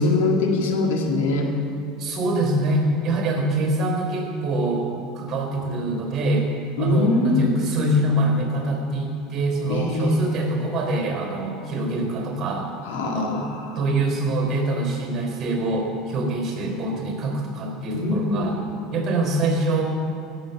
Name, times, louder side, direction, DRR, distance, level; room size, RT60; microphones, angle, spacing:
voice 1, 0.0-1.5 6.8-7.5 9.7-10.2 12.9-13.8 17.9-18.6, left 3 dB, 90° left, 1 dB, 1.8 m, -23 dB
voice 2, 2.0-4.9 5.1-6.5 6.8-12.7 13.0-13.5 13.8-18.6 18.9-19.8, right 1 dB, 35° right, 1 dB, 3.9 m, -24 dB
16.5 x 6.8 x 7.1 m, 2.6 s
supercardioid pair, 125°, 0 cm